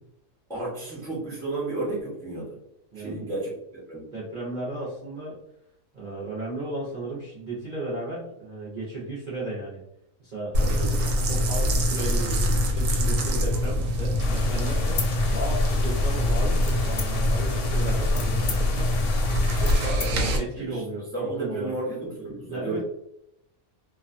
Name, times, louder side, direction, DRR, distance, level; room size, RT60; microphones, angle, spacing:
voice 1, 0.5-2.6 2.9-3.5 3.9-4.1 10.6-11.0 13.3-13.5 20.6-20.8 21.1-22.8, right 2 dB, 5° left, -5 dB, 0.5 m, -32 dB
voice 2, 2.9-3.3 4.1-5.4 5.9-9.8 10.2-10.6 11.0-15.0 15.3-19.1 19.5-21.7 22.2-22.8, right 2 dB, 50° right, -7 dB, 0.6 m, -35 dB
sound 1, 10.5-20.4, left 1 dB, 85° right, 1.0 m, -24 dB
sound 2, 14.2-19.9, left 4 dB, 70° left, 0.8 m, -36 dB
sound 3, 14.9-15.9 16.6-17.4 17.9-20.1, left 6 dB, 85° left, 1.1 m, -36 dB
2.4 x 2.2 x 2.4 m, 0.79 s
omnidirectional pair, 1.5 m